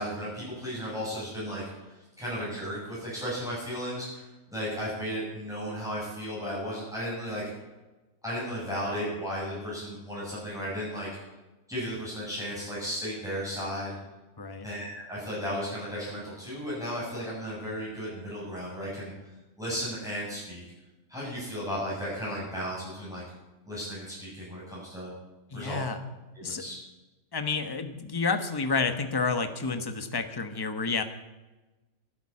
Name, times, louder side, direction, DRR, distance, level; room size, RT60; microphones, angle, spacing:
voice 1, 0.0-7.4 8.2-11.1 11.7-14.0 14.6-19.1 19.6-20.6 21.1-23.2 23.6-25.1 25.5-25.8 26.3-26.7, equal, ahead, -9 dB, 7.2 m, -35 dB
voice 2, 14.4-14.7 25.5-26.0 26.4-26.6 27.3-31.0, left 4 dB, 15° left, 9 dB, 1.1 m, -30 dB
12.0 x 11.0 x 8.6 m, 1.1 s
omnidirectional pair, 1.5 m